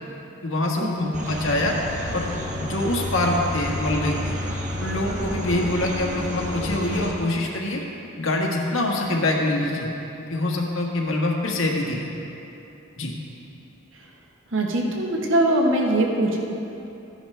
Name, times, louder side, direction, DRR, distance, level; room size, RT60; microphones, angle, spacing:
voice 1, 0.4-1.8 2.1-2.3 2.6-4.3 4.8-7.8 8.2-9.9 10.2-12.1 13.0-13.1, left 2 dB, 75° left, -1 dB, 1.5 m, -24 dB
sound 1, 1.1-7.1, equal, 35° right, 1.3 m, -30 dB
voice 2, 14.5-16.4, right 1 dB, 65° right, 0 dB, 1.3 m, -21 dB
14.0 x 9.9 x 3.4 m, 2.9 s
head